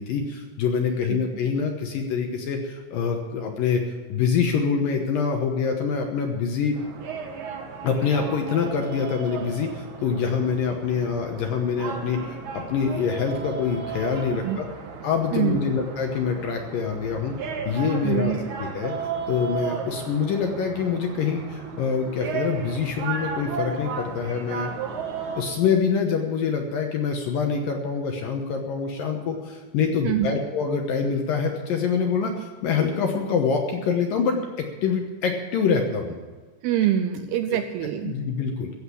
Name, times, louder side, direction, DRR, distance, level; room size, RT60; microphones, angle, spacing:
voice 1, 0.0-3.8 4.1-6.8 7.8-14.7 15.0-17.3 17.7-18.9 19.3-24.7 25.3-36.2 38.0-38.7, left 6 dB, 70° left, 3 dB, 2.3 m, -25 dB
sound 1, 6.7-25.4, right 6 dB, 55° right, 2.5 m, -35 dB
voice 2, 15.3-15.7 18.0-18.4 30.0-30.4 36.6-38.2, right 11 dB, 80° right, 8 dB, 2.3 m, -25 dB
15.0 x 8.1 x 8.3 m, 1.4 s
omnidirectional pair, 5.0 m